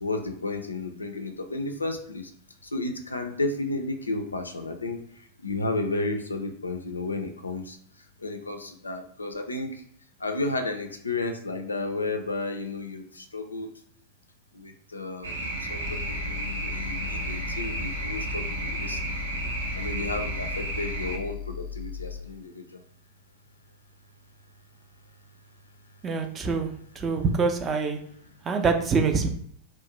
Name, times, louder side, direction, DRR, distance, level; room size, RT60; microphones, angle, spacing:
voice 1, 0.0-2.3 2.6-7.8 8.2-9.8 10.2-13.7 14.5-19.2 19.7-22.8, left 2 dB, 80° left, 6 dB, 0.3 m, -32 dB
sound 1, 15.2-21.2, right 2 dB, 70° right, 0.5 m, -32 dB
sound 2, 15.9-22.3, left 7 dB, 5° left, 0.7 m, -37 dB
voice 2, 26.0-28.0 28.5-29.3, right 4 dB, 25° right, 5 dB, 0.4 m, -25 dB
2.4 x 2.1 x 2.9 m, 0.62 s
figure-of-eight pair, 90°, 0 cm